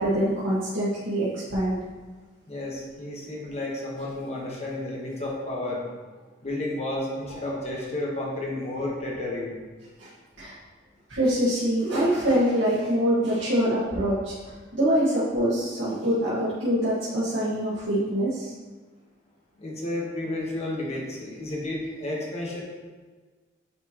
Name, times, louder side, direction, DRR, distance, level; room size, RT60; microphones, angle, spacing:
voice 1, 0.0-1.8 10.0-10.1 10.4-10.5 11.1-18.5, equal, 80° right, -10 dB, 1.6 m, -24 dB
voice 2, 2.5-5.8 6.4-9.5 19.6-22.6, left 1 dB, 35° left, -3 dB, 1.2 m, -31 dB
9.4 x 4.3 x 2.9 m, 1.4 s
head